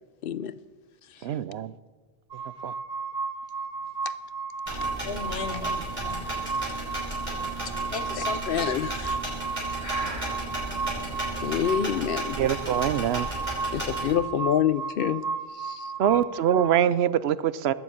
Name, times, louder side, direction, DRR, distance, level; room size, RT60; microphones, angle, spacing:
voice 1, 0.2-0.5 4.0-4.1 4.7-4.9 8.5-9.2 11.4-12.4 13.7-15.2 15.5-15.9, left 9 dB, 65° left, 16 dB, 0.8 m, -27 dB
voice 2, 1.2-1.7 2.6-2.7 10.0-10.1 12.4-13.3 16.0-17.7, right 10 dB, 85° right, 17 dB, 0.9 m, -24 dB
sound 1, 2.3-16.8, right 4 dB, 50° right, 0.9 m, -34 dB
sound 2, 4.7-14.1, right 1 dB, 30° right, 5.7 m, -34 dB
voice 3, 5.0-5.8 6.0-6.3 7.6-8.4 10.4-11.5 16.1-16.2, left 5 dB, 85° left, 11 dB, 1.3 m, -38 dB
Breathing, 8.5-9.1 9.8-10.4, right 1 dB, 15° right, 5.1 m, -38 dB
20.0 x 7.0 x 8.6 m, 1.4 s
omnidirectional pair, 1.0 m